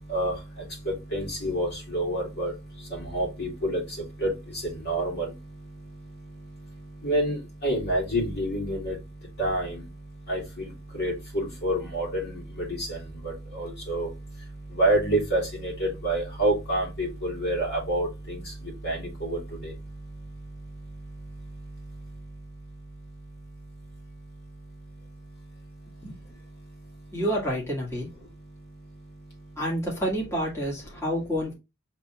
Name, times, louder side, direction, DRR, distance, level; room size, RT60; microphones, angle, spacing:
voice 1, 1.1-2.5 3.1-3.8 4.2-4.3 4.9-5.3 7.0-8.9 9.4-9.7 10.3-10.4 11.0-12.2 13.2-14.1 14.8-18.1 18.8-19.4, right 1 dB, 50° left, -1 dB, 2.1 m, -27 dB
voice 2, 27.1-28.1 29.6-31.5, equal, 15° left, -4 dB, 1.8 m, -28 dB
7.6 x 3.0 x 2.3 m, 0.25 s
head